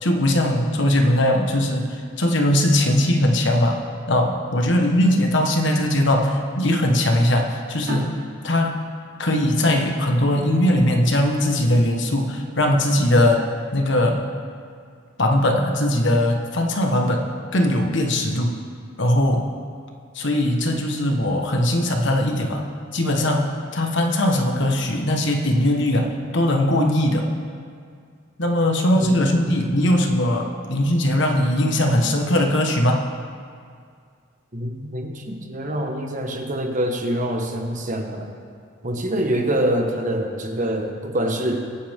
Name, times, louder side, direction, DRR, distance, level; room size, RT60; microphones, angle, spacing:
voice 1, 0.0-3.8 4.1-8.1 8.4-8.7 9.2-13.4 13.7-14.2 15.2-17.2 17.5-18.6 19.0-19.5 20.1-22.6 22.9-27.3 28.4-33.0, left 1 dB, 65° left, 2 dB, 1.4 m, -20 dB
sound 1, 7.9-11.1, right 1 dB, 60° right, 2.9 m, -36 dB
voice 2, 29.0-29.6 34.5-38.3 38.8-41.7, right 1 dB, 40° right, 2 dB, 1.4 m, -25 dB
24.0 x 8.7 x 3.7 m, 2.2 s
head